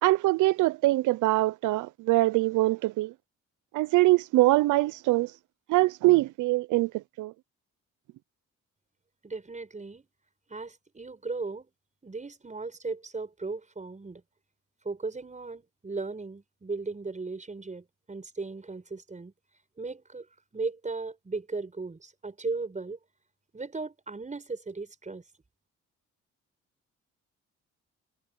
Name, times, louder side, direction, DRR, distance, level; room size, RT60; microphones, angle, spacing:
voice 1, 0.0-3.1 3.7-5.3 5.7-7.3, right 19 dB, 80° right, 0.5 m, -23 dB
voice 2, 9.2-10.1 10.5-11.7 12.0-14.2 14.8-19.3 19.8-20.3 20.5-23.0 23.5-25.2, right 3 dB, 25° right, 6.8 m, -36 dB
cardioid pair, 90°, 30 cm